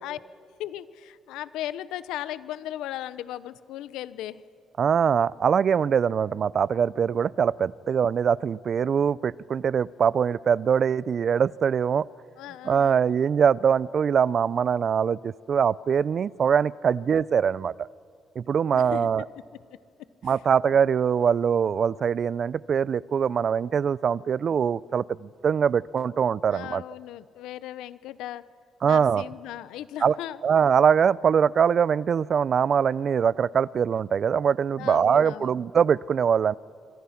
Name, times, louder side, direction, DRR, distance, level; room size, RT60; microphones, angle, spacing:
voice 1, 0.6-4.4 12.4-13.0 18.7-19.1 20.2-20.4 26.5-28.5 28.8-30.4 34.8-35.5, left 13 dB, 85° left, 16 dB, 0.8 m, -37 dB
voice 2, 4.8-12.1 12.6-17.9 18.4-19.2 20.2-26.8 28.8-29.2 30.0-30.2 30.4-36.6, right 7 dB, 55° right, 22 dB, 0.5 m, -23 dB
26.5 x 25.5 x 5.9 m, 2.4 s
supercardioid pair, 70°, 0 cm